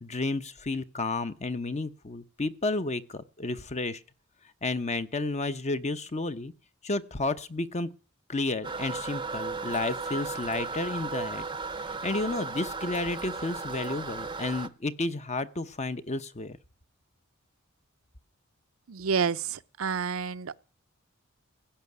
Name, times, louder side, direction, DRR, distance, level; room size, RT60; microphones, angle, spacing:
voice 1, 0.0-4.0 4.6-6.5 6.8-7.9 8.3-11.4 11.8-16.6, left 2 dB, 35° left, 0.8 m, -31 dB
Toilet flush, 8.6-14.7, right 4 dB, 20° right, 0.7 m, -35 dB
voice 2, 18.9-20.6, right 6 dB, 75° right, 0.6 m, -29 dB
16.0 x 5.8 x 9.7 m
head